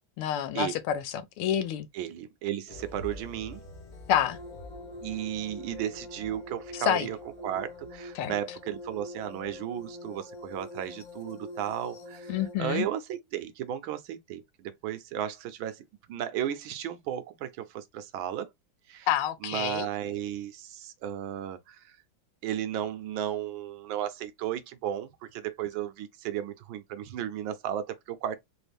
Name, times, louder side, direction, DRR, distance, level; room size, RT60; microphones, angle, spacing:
voice 1, 0.2-1.9 4.1-4.4 6.7-7.1 8.1-8.3 12.3-12.9 19.1-19.9, left 10 dB, 85° left, 1.6 m, -28 dB
voice 2, 1.9-3.6 5.0-7.2 7.4-18.5 18.9-19.1 19.4-22.0 22.4-28.4, right 10 dB, 75° right, 1.3 m, -34 dB
sound 1, 2.7-10.6 11.0-11.1, left 2 dB, 45° left, 0.8 m, -49 dB
sound 2, 4.3-12.5, left 1 dB, 65° left, 1.8 m, -44 dB
4.2 x 2.5 x 3.3 m
omnidirectional pair, 2.4 m